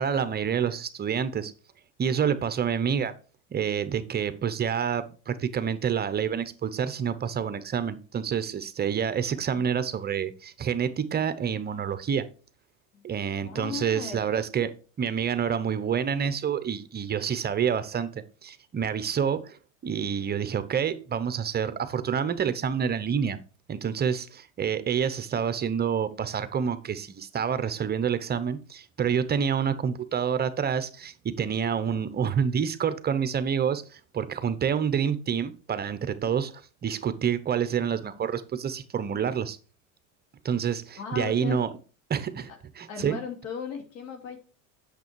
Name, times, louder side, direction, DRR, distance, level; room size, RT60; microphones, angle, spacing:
voice 1, 0.0-1.5 2.0-3.1 3.5-12.3 13.0-14.7 15.0-19.6 19.8-23.4 23.7-39.6 40.4-41.7 42.1-43.2, right 7 dB, 25° right, 12 dB, 0.7 m, -28 dB
voice 2, 13.4-14.3 41.0-41.6 42.9-44.4, left 6 dB, 85° left, 4 dB, 2.8 m, -37 dB
8.2 x 6.7 x 4.6 m, 0.36 s
supercardioid pair, 115°, 39 cm